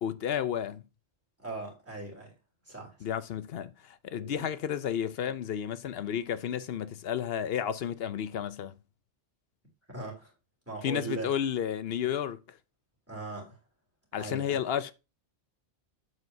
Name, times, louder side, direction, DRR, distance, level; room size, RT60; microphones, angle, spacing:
voice 1, 0.0-0.8 3.0-8.7 10.8-12.6 14.1-14.9, left 9 dB, 65° left, 0.8 m, -32 dB
voice 2, 1.4-2.3 2.7-3.0 4.1-4.3 9.9-10.3 10.7-11.3 13.1-13.6 14.2-14.6, right 3 dB, 10° right, 3.0 m, -39 dB
7.7 x 7.4 x 2.7 m
omnidirectional pair, 1.2 m